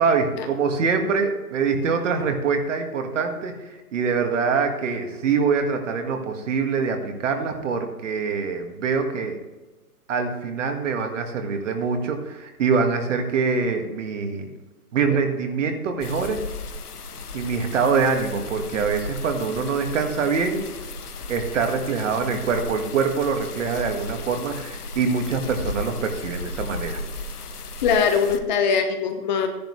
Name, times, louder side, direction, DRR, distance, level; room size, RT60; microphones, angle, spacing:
voice 1, 0.0-9.4 10.1-14.5 14.9-16.4 17.3-20.7 21.3-27.0, right 5 dB, 55° right, 4 dB, 1.9 m, -24 dB
sound 1, 16.0-28.4, left 2 dB, 80° left, 1.3 m, -35 dB
voice 2, 27.8-29.5, left 6 dB, 30° left, 5 dB, 1.1 m, -21 dB
13.5 x 10.5 x 3.2 m, 1.1 s
hypercardioid pair, 145°, 45 cm